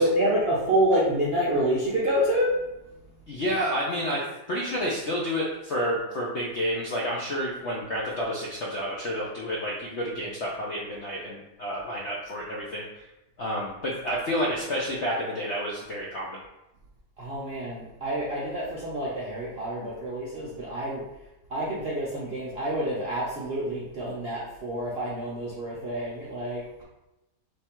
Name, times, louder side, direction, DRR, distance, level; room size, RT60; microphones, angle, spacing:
voice 1, 0.0-2.7 17.2-21.0 21.5-26.8, right 1 dB, 60° right, -6 dB, 0.6 m, -27 dB
voice 2, 3.3-13.1 13.4-16.4, equal, 65° left, -4 dB, 0.7 m, -30 dB
3.4 x 3.1 x 4.4 m, 0.96 s
omnidirectional pair, 1.9 m